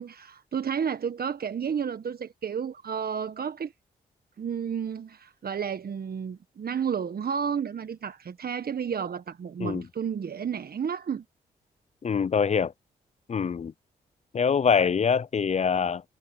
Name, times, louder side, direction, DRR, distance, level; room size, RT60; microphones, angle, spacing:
voice 1, 0.0-3.7 4.4-11.2, right 7 dB, 55° right, 1.5 m, -31 dB
voice 2, 12.0-12.7 13.3-13.7 14.3-16.0, left 6 dB, 35° left, 0.5 m, -24 dB
hypercardioid pair, 40°, 19 cm